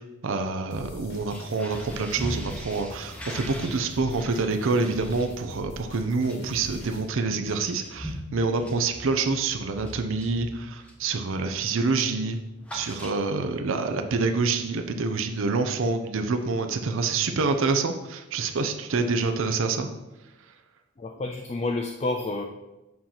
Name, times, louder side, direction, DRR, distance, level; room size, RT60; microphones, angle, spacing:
voice 1, 0.0-12.4 12.7-19.9, right 4 dB, 60° right, 6 dB, 0.5 m, -27 dB
sound 1, 0.7-7.1, left 1 dB, 50° left, 1.1 m, -44 dB
sound 2, 1.2-11.1 11.5-11.8 12.0-13.6, equal, 5° left, 0.7 m, -41 dB
voice 2, 21.0-22.4, left 2 dB, 30° left, 3 dB, 0.3 m, -29 dB
7.5 x 2.9 x 5.6 m, 1.0 s
head